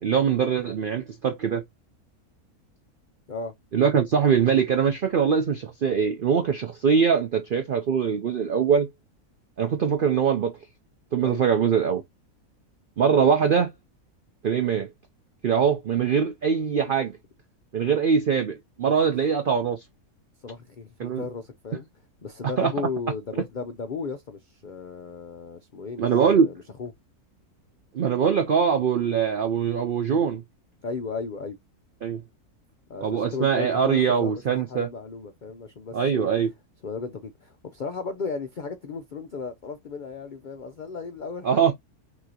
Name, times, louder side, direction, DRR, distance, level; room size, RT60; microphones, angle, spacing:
voice 1, 0.0-1.6 3.7-8.9 9.6-10.5 11.1-12.0 13.0-13.7 14.4-14.9 15.4-17.1 17.7-19.8 21.0-21.2 22.6-22.7 26.0-26.5 27.9-30.4 32.0-32.2 33.0-34.9 35.9-36.5 41.4-41.7, right 7 dB, 75° right, 0.4 m, -22 dB
voice 2, 20.4-21.9 22.2-26.1 26.3-26.9 30.8-31.6 32.9-36.3 36.8-41.7, left 4 dB, 85° left, 0.4 m, -35 dB
6.2 x 2.8 x 2.7 m
omnidirectional pair, 1.6 m